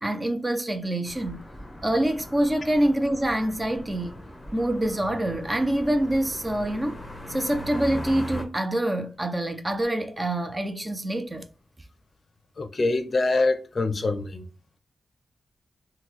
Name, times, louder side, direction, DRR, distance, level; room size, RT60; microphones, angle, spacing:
voice 1, 0.0-1.4 1.8-4.2 4.5-7.0 7.3-11.5, right 1 dB, 20° right, 0.4 m, -26 dB
sound 1, 1.1-8.4, equal, 15° left, 0.9 m, -39 dB
voice 2, 12.6-14.5, left 3 dB, 45° left, 0.5 m, -24 dB
3.7 x 2.2 x 3.0 m
wide cardioid pair, 85°, 0 cm